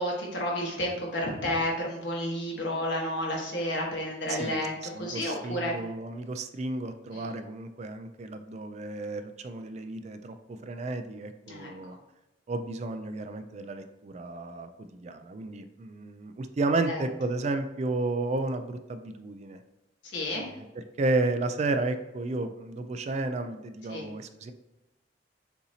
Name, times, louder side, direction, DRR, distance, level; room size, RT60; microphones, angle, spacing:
voice 1, 0.0-5.7 7.1-7.3 11.5-11.7 16.9-17.0 20.1-20.5 23.9-24.0, left 1 dB, 75° left, -2 dB, 1.3 m, -31 dB
voice 2, 4.3-4.6 4.9-12.0 12.5-14.7 15.0-19.6 20.6-20.7 21.0-24.5, right 2 dB, 40° right, 9 dB, 0.3 m, -32 dB
6.7 x 2.8 x 2.8 m, 0.99 s
head